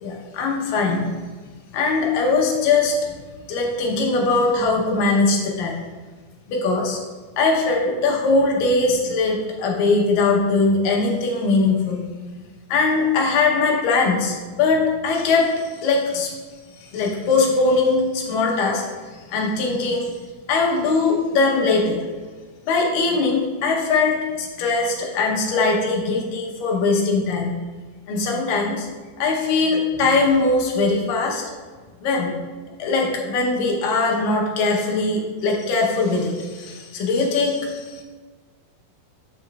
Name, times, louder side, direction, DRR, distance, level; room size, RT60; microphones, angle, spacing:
voice 1, 0.0-1.0 1.7-2.9 3.5-5.8 6.5-7.0 7.4-12.4 12.7-16.3 16.9-18.8 19.3-20.1 20.5-22.0 22.7-27.6 28.1-28.9 29.2-31.4 32.0-32.3 32.8-38.0, left 3 dB, 75° left, -1 dB, 2.2 m, -21 dB
6.8 x 6.7 x 2.3 m, 1.4 s
omnidirectional pair, 4.7 m